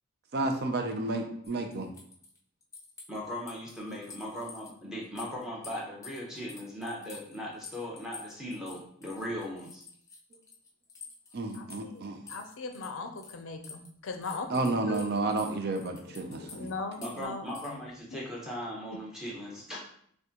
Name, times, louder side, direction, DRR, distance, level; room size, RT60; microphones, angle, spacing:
voice 1, 0.3-1.9 11.3-12.2 14.5-16.7, right 2 dB, 50° right, 4 dB, 0.5 m, -31 dB
sound 1, 1.4-4.7 5.0-13.4 13.6-17.7, left 5 dB, 15° left, 0.5 m, -49 dB
voice 2, 3.1-9.8 17.0-19.8, equal, 5° right, -4 dB, 0.9 m, -38 dB
voice 3, 11.5-15.2 15.7-17.8, left 3 dB, 60° left, 5 dB, 0.5 m, -40 dB
6.1 x 2.2 x 2.9 m, 0.64 s
head